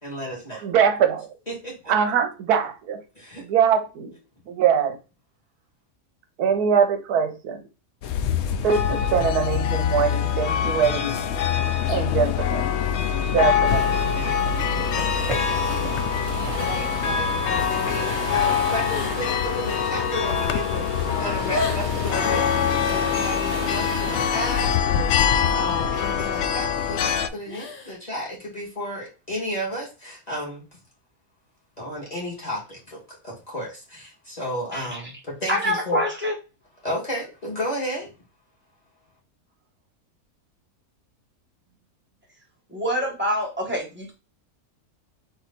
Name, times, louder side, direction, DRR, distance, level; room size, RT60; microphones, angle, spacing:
voice 1, 0.0-0.7 1.5-1.9 3.2-3.4 13.6-15.9 16.3-25.1 25.5-30.6 31.8-33.0 33.2-36.0 36.8-38.1, equal, 25° left, -4 dB, 2.0 m, -33 dB
voice 2, 0.6-1.3 1.9-3.0 3.5-4.1 4.5-5.0 6.4-7.6 8.6-11.2 11.9-12.7 13.3-14.1, right 7 dB, 85° right, 8 dB, 1.2 m, -22 dB
sound 1, 8.0-27.3, left 7 dB, 70° left, 0.6 m, -24 dB
sound 2, 13.7-24.7, right 3 dB, 55° right, 0.3 m, -36 dB
sound 3, 18.0-19.4 19.6-20.0 20.6-20.7 20.9-22.0 27.4-28.0 28.3-28.4, left 3 dB, 40° left, 0.9 m, -33 dB
voice 3, 35.5-36.3 42.7-44.1, equal, 10° right, -2 dB, 1.3 m, -26 dB
4.2 x 2.9 x 4.1 m, 0.31 s
omnidirectional pair, 1.6 m